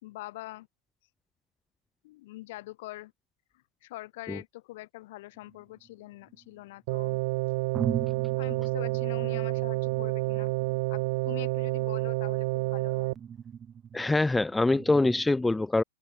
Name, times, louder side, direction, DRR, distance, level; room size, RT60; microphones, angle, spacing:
voice 1, 0.0-0.7 2.0-3.1 3.8-7.2 8.4-10.5 10.9-13.1, left 18 dB, 55° left, 3.5 m, -44 dB
sound 1, 5.4-6.7 7.3-7.4 7.7-15.3, right 8 dB, 20° right, 3.1 m, -41 dB
sound 2, 6.9-13.1, right 23 dB, 50° right, 0.6 m, -29 dB
voice 2, 13.9-15.8, left 2 dB, 5° left, 0.7 m, -24 dB
hypercardioid pair, 115°, 0 cm